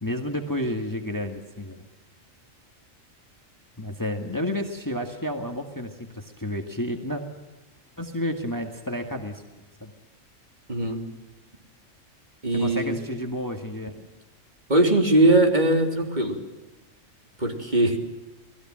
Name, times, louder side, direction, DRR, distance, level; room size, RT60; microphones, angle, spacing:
voice 1, 0.0-1.9 3.8-7.2 8.0-9.4 9.8-9.9 12.5-14.0, left 1 dB, 15° left, 4 dB, 2.0 m, -31 dB
voice 2, 10.7-11.0 12.4-13.0 14.7-16.4 17.4-18.0, right 1 dB, 35° right, 2 dB, 3.5 m, -20 dB
29.0 x 20.0 x 7.5 m, 1.1 s
omnidirectional pair, 1.4 m